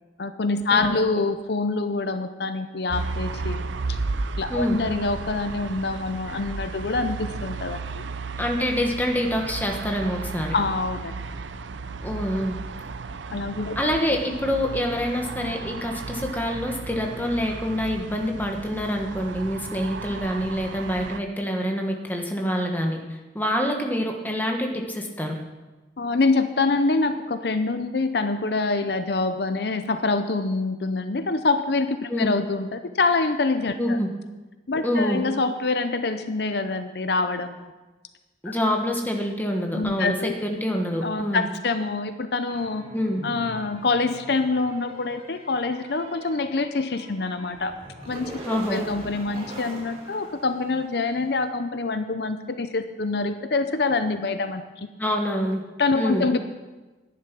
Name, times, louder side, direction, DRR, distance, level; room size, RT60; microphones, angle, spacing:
voice 1, 0.2-3.6 3.9-4.0 4.4-8.0 10.5-11.1 13.3-13.7 26.0-34.0 34.7-37.7 39.8-40.3 41.0-42.8 43.2-47.7 48.1-54.9 55.8-56.4, left 3 dB, 65° left, 9 dB, 0.6 m, -25 dB
sound 1, 2.9-21.2, right 4 dB, 90° right, 0.6 m, -34 dB
voice 2, 8.4-10.5 12.0-12.5 13.7-23.0 23.3-25.4 32.1-32.3 33.8-34.1 34.8-35.2 38.4-41.5 42.9-43.2 48.4-48.8 55.0-55.6 55.9-56.3, equal, 10° left, 2 dB, 1.2 m, -26 dB
sound 2, 42.5-51.2, equal, 30° right, 1.8 m, -42 dB
11.0 x 10.5 x 5.9 m, 1.2 s
head